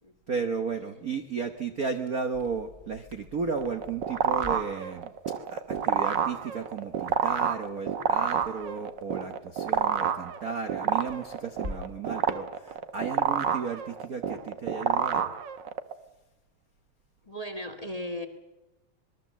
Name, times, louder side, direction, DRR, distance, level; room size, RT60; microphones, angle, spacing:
voice 1, 0.3-5.1 5.5-15.3, right 5 dB, 90° right, 7 dB, 0.7 m, -34 dB
Crackle, 1.8-12.1, left 2 dB, 20° right, 2.9 m, -48 dB
sound 1, 3.5-15.9, right 8 dB, 65° right, 1.1 m, -28 dB
voice 2, 17.2-18.3, left 1 dB, 20° left, 6 dB, 1.2 m, -36 dB
26.0 x 20.5 x 7.5 m, 1.0 s
omnidirectional pair, 3.4 m